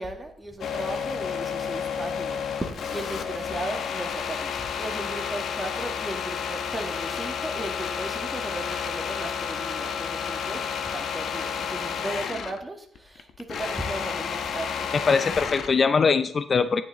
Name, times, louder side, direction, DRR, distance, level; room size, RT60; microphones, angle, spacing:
voice 1, 0.0-14.9, right 2 dB, 10° right, 2 dB, 1.9 m, -36 dB
sound 1, 0.6-12.6 13.0-15.8, left 7 dB, 65° left, 0.9 m, -31 dB
voice 2, 14.9-16.8, left 5 dB, 40° left, 12 dB, 0.5 m, -22 dB
9.4 x 9.4 x 3.9 m, 0.62 s
cardioid pair, 90°, 0 cm